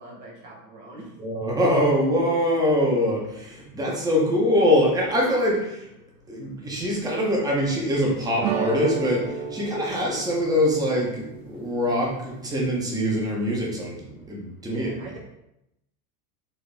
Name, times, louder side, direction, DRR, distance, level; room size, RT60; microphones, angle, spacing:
voice 1, 0.0-1.2 14.7-15.2, right 1 dB, 40° right, -1 dB, 1.2 m, -42 dB
voice 2, 1.2-5.9 6.3-14.9, equal, 10° right, -2 dB, 0.6 m, -23 dB
sound 1, 8.4-13.3, right 7 dB, 65° right, 0.7 m, -33 dB
4.2 x 2.8 x 3.3 m, 0.85 s
supercardioid pair, 155°, 46 cm